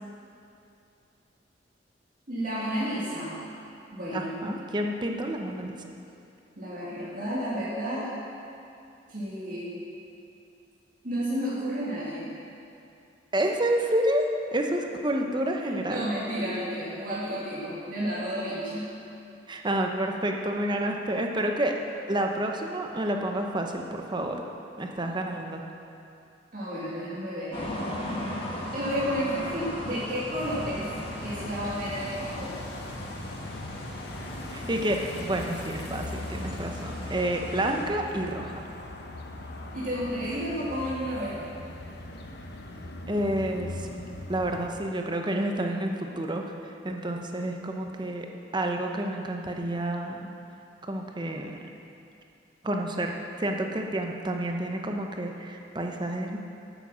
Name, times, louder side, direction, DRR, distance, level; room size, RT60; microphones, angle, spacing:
voice 1, 2.3-3.3 3.9-4.3 6.6-8.1 9.1-9.8 11.0-12.2 15.6-18.9 26.5-27.7 28.7-30.9 31.2-32.6 39.7-41.4, equal, 50° right, -9 dB, 2.1 m, -31 dB
voice 2, 4.1-5.8 13.3-16.1 19.5-21.7 22.1-24.4 24.8-25.6 34.5-38.7 43.1-43.9 44.3-48.3 48.5-50.3 50.9-51.5 52.6-56.4, right 1 dB, 25° right, 3 dB, 0.8 m, -29 dB
sound 1, 27.5-37.8, left 1 dB, 30° left, 1.6 m, -38 dB
sound 2, 30.4-44.7, left 2 dB, 65° left, 0.8 m, -40 dB
9.1 x 8.2 x 6.1 m, 2.6 s
head